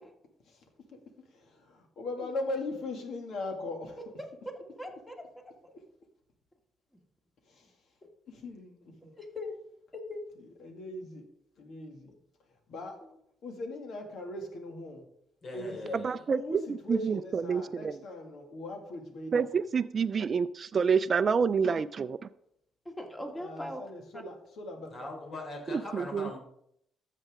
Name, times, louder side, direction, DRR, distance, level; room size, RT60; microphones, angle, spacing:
voice 1, 1.3-4.0 5.4-5.8 7.5-7.7 8.3-9.2 10.6-11.3 11.6-12.1 12.7-13.0 13.4-15.1 15.5-16.0 16.3-19.4 23.4-25.1, left 2 dB, 70° left, 3 dB, 2.2 m, -40 dB
voice 2, 4.8-5.1 9.2-9.6 9.9-10.2 13.0-13.2 22.9-23.8 24.1-24.2, left 1 dB, 15° left, 2 dB, 2.2 m, -40 dB
voice 3, 15.4-16.3 24.9-26.4, left 2 dB, 50° left, 1 dB, 3.8 m, -41 dB
voice 4, 15.9-18.0 19.3-22.2 25.7-26.3, right 6 dB, 45° right, 11 dB, 0.4 m, -28 dB
13.5 x 7.5 x 3.7 m, 0.75 s
cardioid pair, 90°, 0 cm